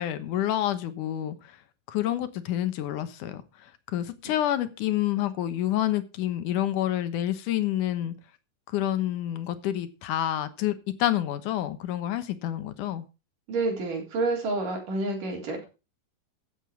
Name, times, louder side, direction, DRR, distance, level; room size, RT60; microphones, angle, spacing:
voice 1, 0.0-1.6 1.9-8.1 8.7-13.1, left 12 dB, 75° left, 11 dB, 2.6 m, -28 dB
voice 2, 13.5-15.6, right 3 dB, 80° right, 0 dB, 5.6 m, -29 dB
15.5 x 8.2 x 4.6 m, 0.31 s
omnidirectional pair, 3.7 m